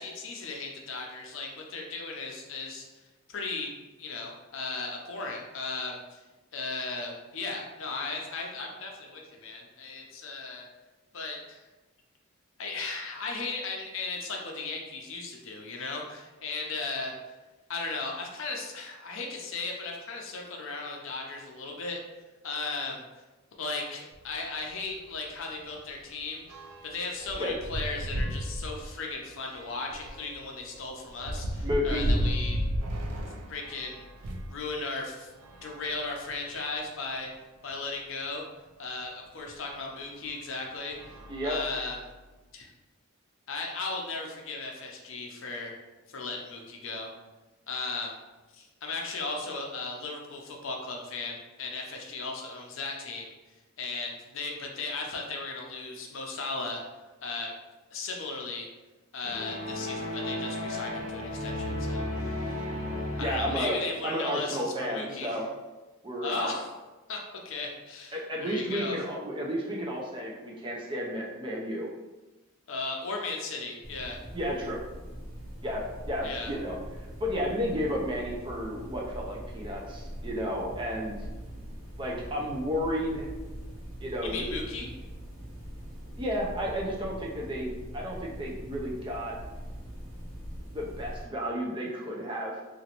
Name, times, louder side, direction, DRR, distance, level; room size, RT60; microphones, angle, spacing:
voice 1, 0.0-2.8 3.3-3.7 4.0-6.2 6.5-10.7 11.1-11.6 12.6-17.1 17.7-22.0 22.4-23.0 23.6-26.4 26.8-32.6 33.5-34.0 34.5-35.3 35.6-37.3 37.6-38.4 38.8-41.2 41.4-42.0 42.5-42.7 43.5-45.7 46.1-47.1 47.7-48.2 48.5-53.3 53.8-56.8 57.2-57.5 57.9-58.7 59.1-62.7 63.2-65.4 66.2-66.7 67.1-67.2 67.4-69.0 72.7-74.2 76.2-76.5 84.2-84.9, left 3 dB, 60° left, 0 dB, 0.5 m, -36 dB
sound 1, 24.1-24.3 24.7-24.8 25.1-34.6 35.3-36.7 37.3-37.4 37.7-37.8 39.5-39.6 40.2-40.4 40.9-42.2, equal, 90° right, 0.4 m, -34 dB
voice 2, 31.6-32.1 41.3-41.6 63.2-63.8 64.0-65.5 66.0-66.5 68.1-71.9 74.3-74.8 75.6-76.8 77.2-81.3 82.0-83.3 84.0-84.6 86.2-89.4 90.7-92.6, equal, 20° right, -3 dB, 0.4 m, -32 dB
sound 2, 59.2-63.8, left 1 dB, 35° left, 0.8 m, -34 dB
sound 3, 73.8-91.3, equal, 75° right, 1.0 m, -42 dB
3.0 x 2.5 x 2.8 m, 1.1 s
head